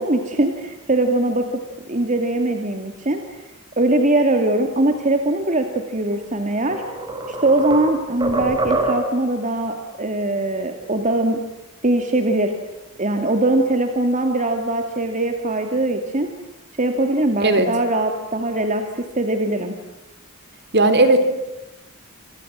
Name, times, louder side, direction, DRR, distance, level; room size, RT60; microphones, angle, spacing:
voice 1, 0.0-1.6 1.9-3.2 3.8-6.8 7.3-11.4 11.8-12.5 13.0-16.3 16.8-19.8, right 2 dB, 35° right, 5 dB, 2.5 m, -21 dB
sound 1, 6.1-6.2 6.7-9.3, right 2 dB, 20° right, 5.1 m, -25 dB
voice 2, 20.7-21.2, right 2 dB, 50° right, 10 dB, 3.8 m, -15 dB
28.0 x 27.0 x 7.6 m, 0.98 s
head